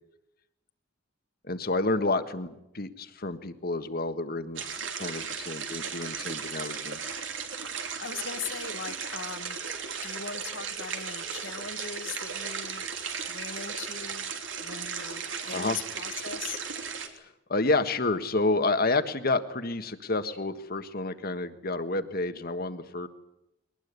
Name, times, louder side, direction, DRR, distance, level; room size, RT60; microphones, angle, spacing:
voice 1, 1.4-2.5 2.7-4.6 4.9-7.0 15.5-15.8 17.2-23.1, left 2 dB, 55° left, 10 dB, 1.6 m, -29 dB
sound 1, 4.6-17.1, right 6 dB, 80° right, 3.1 m, -36 dB
voice 2, 8.0-9.6 10.0-12.9 13.3-16.6, left 6 dB, 80° left, 7 dB, 2.2 m, -40 dB
22.0 x 19.5 x 9.6 m, 0.88 s
head